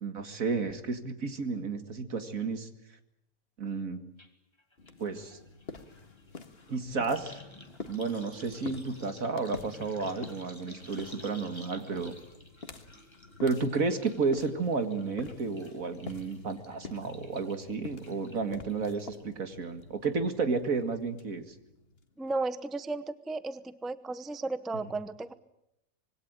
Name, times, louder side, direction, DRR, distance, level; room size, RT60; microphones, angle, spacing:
voice 1, 0.0-2.7 3.6-4.0 5.0-5.4 6.7-7.3 7.9-12.2 13.4-21.5, right 4 dB, 75° right, 8 dB, 2.5 m, -32 dB
sound 1, 4.2-4.3 4.6-19.2 19.6-20.1 20.4-20.5, left 1 dB, 20° left, 2.4 m, -53 dB
sound 2, 4.8-22.3, left 4 dB, 45° left, 1.9 m, -48 dB
voice 2, 22.2-25.3, right 3 dB, ahead, 13 dB, 0.7 m, -34 dB
25.5 x 21.5 x 8.9 m, 0.82 s
omnidirectional pair, 1.4 m